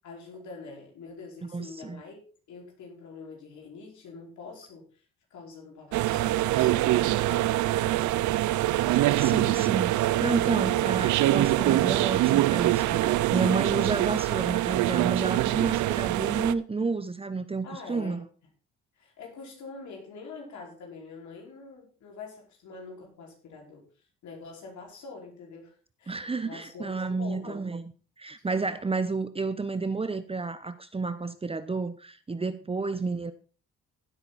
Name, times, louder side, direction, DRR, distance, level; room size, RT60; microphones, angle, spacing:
voice 1, 0.0-2.2 2.5-5.0 5.3-8.0 10.4-10.9 17.6-18.3 19.0-27.6, left 4 dB, 70° left, 5.2 m, -45 dB
voice 2, 1.5-2.0 9.2-18.2 26.1-27.8 28.2-33.3, right 4 dB, 20° right, 0.9 m, -31 dB
sound 1, 5.9-16.5, right 16 dB, 75° right, 0.7 m, -24 dB
16.0 x 8.1 x 4.2 m
supercardioid pair, 80°, 30 cm